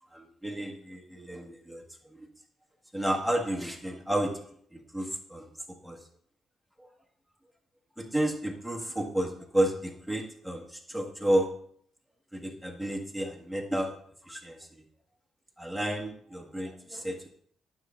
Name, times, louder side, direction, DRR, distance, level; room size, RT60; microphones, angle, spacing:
voice 1, 0.1-1.8 2.1-2.3 2.9-4.4 4.7-5.5 5.8-6.0 6.8-6.9 8.0-11.5 12.3-14.0 14.2-14.7 15.6-17.3, right 1 dB, 5° left, 0 dB, 1.7 m, -31 dB
9.5 x 7.1 x 2.6 m, 0.62 s
cardioid pair, 90°, 0 cm